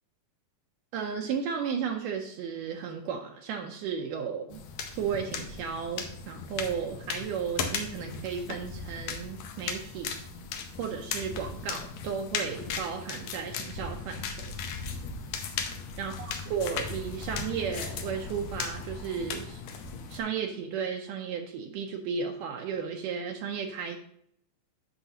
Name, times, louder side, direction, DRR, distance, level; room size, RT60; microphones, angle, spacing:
voice 1, 0.9-4.6 5.0-10.2 10.8-14.5 16.0-19.6 20.1-24.0, right 6 dB, 80° right, 3 dB, 2.1 m, -34 dB
sound 1, 4.5-20.2, left 5 dB, 70° left, 1.8 m, -37 dB
9.8 x 5.7 x 2.8 m, 0.71 s
omnidirectional pair, 3.8 m